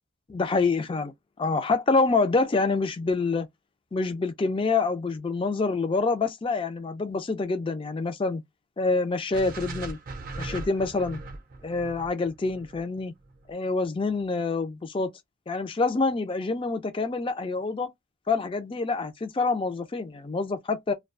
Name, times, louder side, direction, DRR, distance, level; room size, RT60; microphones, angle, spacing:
voice 1, 0.3-1.1 1.4-3.5 3.9-8.4 8.8-10.0 10.4-11.2 11.6-13.1 13.5-15.1 15.5-17.9 18.3-20.9, left 3 dB, 25° left, 0.3 m, -26 dB
sound 1, 9.3-13.5, right 3 dB, 40° right, 0.5 m, -39 dB
2.3 x 2.2 x 2.4 m
head